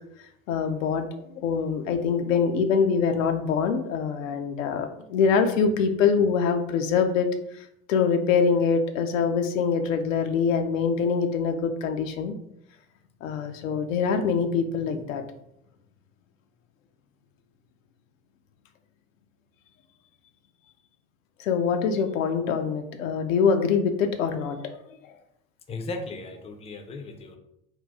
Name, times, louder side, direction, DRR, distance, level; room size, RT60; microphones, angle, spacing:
voice 1, 0.5-12.4 13.2-15.2 21.4-25.1, left 6 dB, 70° left, 6 dB, 0.5 m, -24 dB
voice 2, 25.7-27.4, left 3 dB, 15° left, 5 dB, 0.5 m, -36 dB
3.9 x 2.3 x 3.5 m, 0.76 s
figure-of-eight pair, 65°, 42 cm